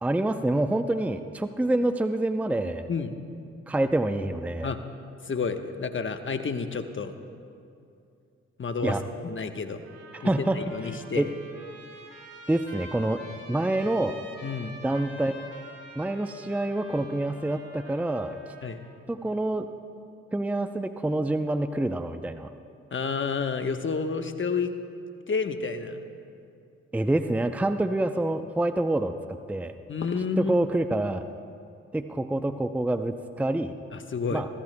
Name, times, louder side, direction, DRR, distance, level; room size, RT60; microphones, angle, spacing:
voice 1, 0.0-2.9 3.7-4.7 8.8-9.0 10.1-10.6 11.1-11.3 12.5-14.2 14.8-15.3 16.0-18.4 19.1-19.7 20.3-22.5 26.9-29.1 29.5-29.7 30.4-31.2 31.9-33.7 34.3-34.5, right 1 dB, 5° right, 9 dB, 0.5 m, -27 dB
voice 2, 5.2-7.1 8.6-9.0 9.2-9.8 10.2-11.3 14.4-14.8 18.6-18.8 22.9-24.7 25.3-26.0 29.9-30.6 33.9-34.4, left 5 dB, 40° left, 7 dB, 1.1 m, -30 dB
Trumpet, 9.8-19.0, right 1 dB, 55° right, 3.0 m, -47 dB
24.5 x 14.0 x 2.2 m, 2.5 s
supercardioid pair, 50°, 29 cm